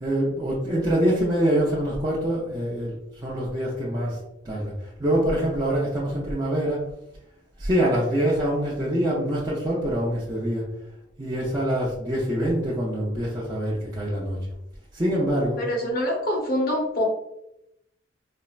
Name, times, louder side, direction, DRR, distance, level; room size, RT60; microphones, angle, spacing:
voice 1, 0.0-4.2 4.4-4.7 5.0-6.8 7.6-10.6 11.2-14.4 14.9-15.6, right 1 dB, 20° right, -8 dB, 0.6 m, -25 dB
voice 2, 15.6-17.0, equal, 50° left, -1 dB, 0.8 m, -25 dB
4.2 x 2.1 x 2.3 m, 0.84 s
head